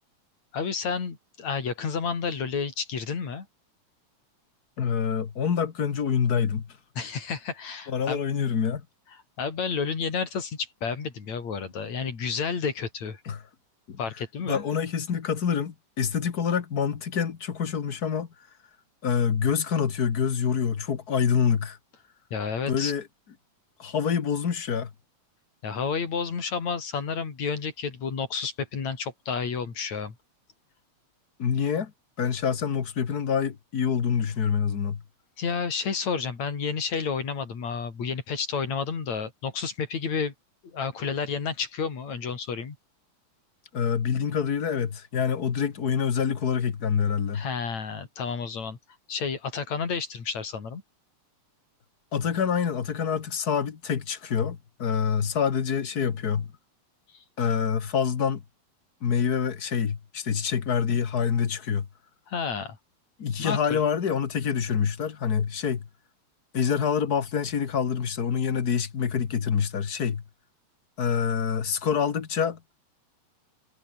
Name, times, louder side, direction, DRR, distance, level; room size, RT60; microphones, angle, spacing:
voice 1, 0.5-3.5 7.0-8.2 9.4-13.2 14.0-14.6 22.3-22.9 25.6-30.1 35.4-40.3 40.7-42.8 47.3-48.8 49.1-50.8 62.3-62.8 63.4-63.8, left 5 dB, 70° left, 4.9 m, -30 dB
voice 2, 4.8-6.7 7.9-8.8 13.2-13.4 13.9-14.0 14.4-18.3 19.0-21.8 22.7-23.0 23.8-24.9 31.4-31.9 32.2-35.0 43.7-47.4 52.1-56.5 57.4-58.4 59.0-61.9 63.2-65.9 66.5-70.2 71.0-72.6, left 7 dB, 40° left, 1.6 m, -26 dB
omnidirectional pair, 3.3 m